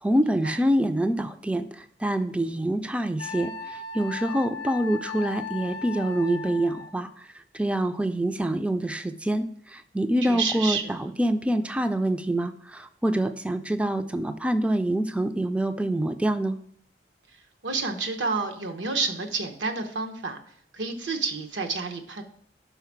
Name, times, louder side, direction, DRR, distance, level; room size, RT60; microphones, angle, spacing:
voice 1, 0.0-16.6, right 1 dB, 5° right, 9 dB, 0.3 m, -26 dB
Wind instrument woodwind instrument, 3.2-7.0, left 5 dB, 60° left, 0.7 m, -37 dB
voice 2, 10.2-10.9 17.6-20.4 20.7-22.2, right 4 dB, 80° right, 5 dB, 0.8 m, -29 dB
5.6 x 4.2 x 5.9 m, 0.63 s
head